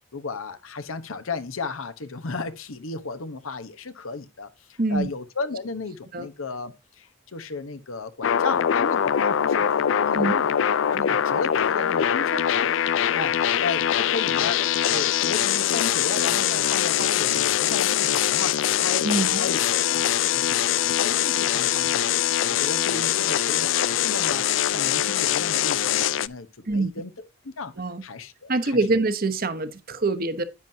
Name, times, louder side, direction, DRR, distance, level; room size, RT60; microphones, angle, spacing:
voice 1, 0.1-9.7 9.9-12.7 13.1-14.6 14.9-20.0 20.3-22.1 22.4-27.1 27.4-27.7 28.0-29.0, left 3 dB, 85° left, 1.0 m, -34 dB
voice 2, 4.8-5.1 6.1-6.3 10.1-10.3 19.0-19.4 26.7-26.9 27.8-28.0 28.5-30.4, right 2 dB, 45° right, 1.0 m, -24 dB
sound 1, 8.2-26.3, left 10 dB, 65° left, 0.4 m, -23 dB
10.0 x 9.1 x 2.8 m
head